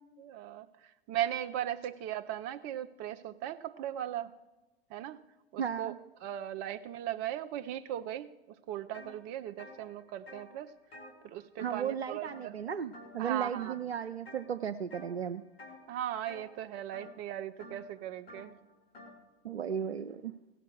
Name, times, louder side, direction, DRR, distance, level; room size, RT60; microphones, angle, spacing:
voice 1, 0.2-4.3 4.9-5.2 5.5-5.9 6.2-8.3 8.7-10.7 11.2-12.5 13.2-13.7 15.9-18.6, right 11 dB, 35° right, 9 dB, 0.5 m, -38 dB
voice 2, 5.6-6.0 11.6-15.4 19.4-20.3, right 8 dB, 90° right, 8 dB, 0.5 m, -35 dB
sound 1, 8.9-9.1 9.5-12.0 12.2-12.6 12.9-13.3 13.6-14.4 14.9-15.2 15.5-19.2, left 2 dB, 70° left, 2.8 m, -51 dB
17.0 x 5.9 x 7.8 m, 1.1 s
figure-of-eight pair, 90°, 31 cm